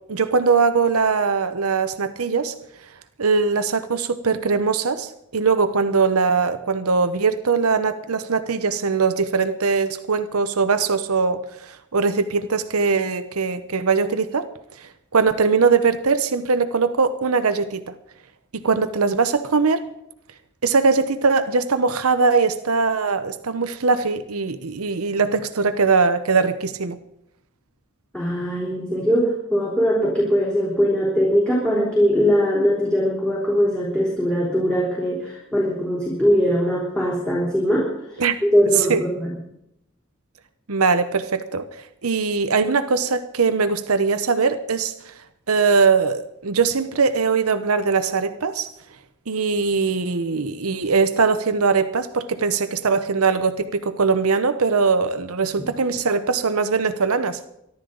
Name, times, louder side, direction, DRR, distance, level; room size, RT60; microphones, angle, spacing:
voice 1, 0.1-2.5 3.2-14.5 14.8-17.9 18.5-19.8 20.6-27.0 38.2-38.4 38.9-39.0 40.7-41.7 42.0-44.9 45.5-48.7 49.3-57.4, right 4 dB, 90° right, 10 dB, 0.9 m, -21 dB
voice 2, 28.1-38.2 38.5-39.3, equal, 5° left, -4 dB, 3.6 m, -21 dB
24.0 x 12.0 x 3.9 m, 0.81 s
head